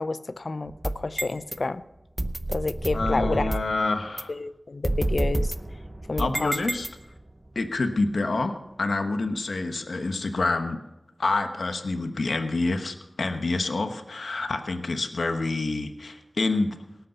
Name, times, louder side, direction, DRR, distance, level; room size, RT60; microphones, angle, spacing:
voice 1, 0.0-1.8 2.5-3.6 4.3-5.5 6.1-6.6, left 3 dB, 65° left, 14 dB, 0.6 m, -29 dB
sound 1, 0.7-1.6 2.2-3.8 4.2-4.3 4.8-7.3, right 1 dB, 25° right, 0.7 m, -29 dB
voice 2, 2.9-4.3 6.2-6.9 7.5-10.8 11.2-16.8, left 3 dB, 85° left, 7 dB, 1.1 m, -27 dB
18.5 x 8.4 x 5.5 m, 0.94 s
wide cardioid pair, 50°, 0 cm